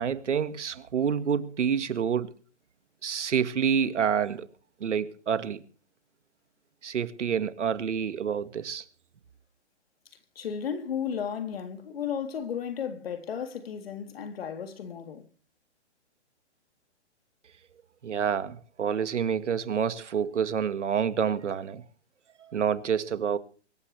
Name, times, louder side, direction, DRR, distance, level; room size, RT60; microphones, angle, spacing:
voice 1, 0.0-2.3 3.0-4.5 4.8-5.6 6.8-8.8 18.0-21.8 22.4-23.4, right 7 dB, 85° right, 2.0 m, -28 dB
voice 2, 10.4-15.2, left 7 dB, 55° left, 3.5 m, -34 dB
24.5 x 13.0 x 3.4 m
hypercardioid pair, 160°, 35 cm